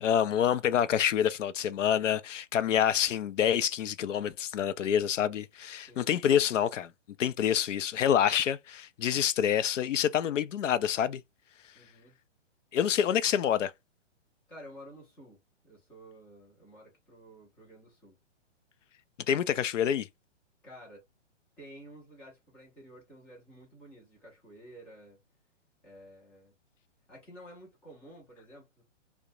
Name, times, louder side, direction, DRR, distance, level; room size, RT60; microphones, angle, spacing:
voice 1, 0.0-6.9 7.2-11.2 12.7-13.7 19.3-20.1, left 9 dB, 85° left, 0.5 m, -27 dB
voice 2, 5.8-6.1 11.7-12.2 14.5-18.2 20.6-21.0 21.6-25.2 25.8-26.5 27.1-28.8, equal, 5° left, 0.3 m, -52 dB
2.5 x 2.0 x 2.9 m
hypercardioid pair, 130°, 36 cm